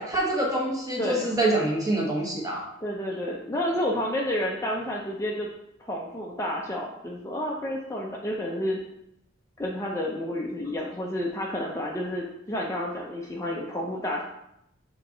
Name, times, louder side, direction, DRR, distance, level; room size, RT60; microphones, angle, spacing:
voice 1, 0.0-2.6, right 1 dB, 20° right, -2 dB, 1.3 m, -26 dB
voice 2, 2.8-5.5 5.8-8.8 9.6-14.2, left 1 dB, 15° left, -2 dB, 0.5 m, -30 dB
6.6 x 3.9 x 3.7 m, 0.81 s
head